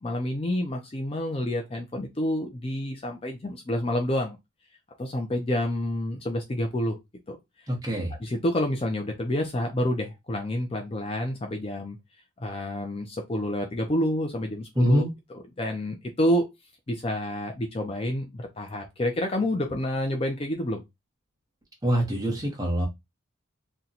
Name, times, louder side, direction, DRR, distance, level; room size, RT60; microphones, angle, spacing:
voice 1, 0.0-4.4 5.0-7.0 7.3-7.7 8.2-12.0 12.4-15.0 15.6-16.4 16.9-20.8, left 1 dB, 25° left, 0.4 m, -28 dB
voice 2, 7.7-8.1 14.7-15.1 21.8-22.9, equal, 20° right, 0.9 m, -24 dB
2.8 x 2.2 x 3.8 m
head